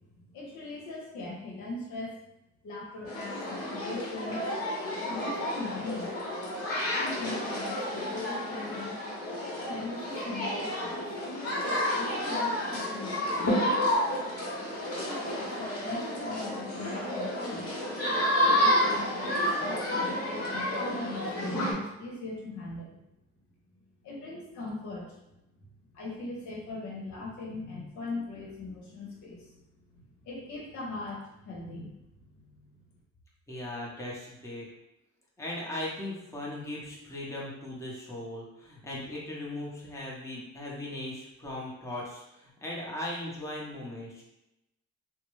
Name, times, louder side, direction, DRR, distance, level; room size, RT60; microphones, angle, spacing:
voice 1, 0.2-2.1 2.6-4.4 4.8-6.1 6.9-8.9 9.4-11.0 11.9-13.5 14.6-17.7 18.5-23.0 24.0-25.4 25.9-29.6 29.9-32.8, left 2 dB, 75° left, -3 dB, 0.9 m, -40 dB
sound 1, 3.1-21.7, left 1 dB, 50° left, 1.0 m, -30 dB
voice 2, 33.5-34.7 35.4-44.2, left 1 dB, 10° left, -5 dB, 0.8 m, -38 dB
2.7 x 2.1 x 3.1 m, 0.91 s
cardioid pair, 90°, 30 cm